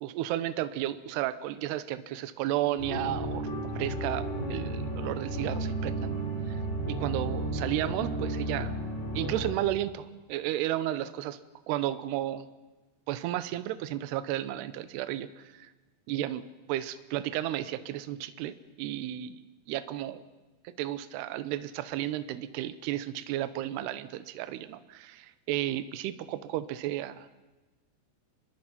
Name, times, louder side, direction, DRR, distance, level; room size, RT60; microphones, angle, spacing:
voice 1, 0.0-3.5 3.8-6.2 6.5-6.6 6.9-8.7 9.1-11.4 11.7-12.5 13.1-15.7 16.1-19.4 19.7-20.2 20.6-27.3, right 13 dB, 80° right, 13 dB, 2.8 m, -33 dB
sound 1, 2.8-9.5, right 1 dB, 30° left, 4.6 m, -33 dB
26.0 x 21.0 x 5.9 m, 1.2 s
omnidirectional pair, 4.9 m